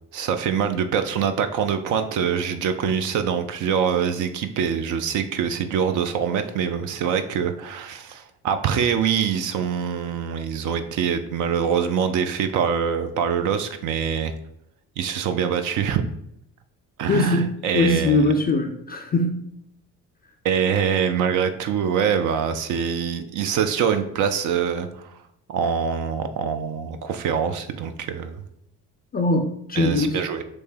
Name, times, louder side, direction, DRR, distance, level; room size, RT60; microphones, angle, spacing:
voice 1, 0.1-14.3 15.0-16.0 17.0-18.2 20.4-25.1 25.5-28.4 29.8-30.4, right 7 dB, 40° right, 8 dB, 0.5 m, -24 dB
voice 2, 17.1-19.5 29.1-30.2, left 2 dB, 20° left, 3 dB, 0.4 m, -21 dB
3.2 x 3.1 x 4.6 m, 0.78 s
figure-of-eight pair, 50°, 47 cm